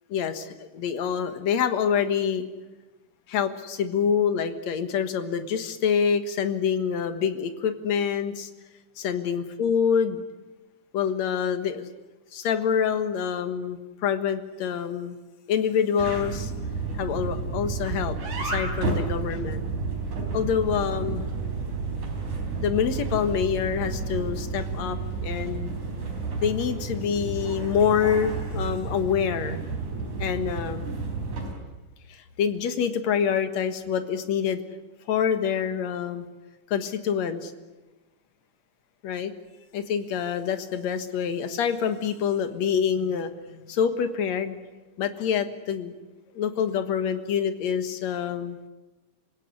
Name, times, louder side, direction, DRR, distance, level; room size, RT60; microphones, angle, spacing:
voice 1, 0.1-2.4 3.3-8.5 9.0-10.2 10.9-11.9 12.3-15.2 15.5-16.5 17.0-19.6 20.3-21.3 22.6-25.8 26.4-29.6 30.2-30.9 32.1-34.6 35.1-36.3 36.7-37.5 39.0-39.3 39.7-44.6 45.0-45.9 46.3-48.6, left 7 dB, 60° left, 9 dB, 2.6 m, -26 dB
sound 1, 16.0-31.5, right 4 dB, 65° right, 5.5 m, -31 dB
27.5 x 17.0 x 9.8 m, 1.2 s
omnidirectional pair, 3.6 m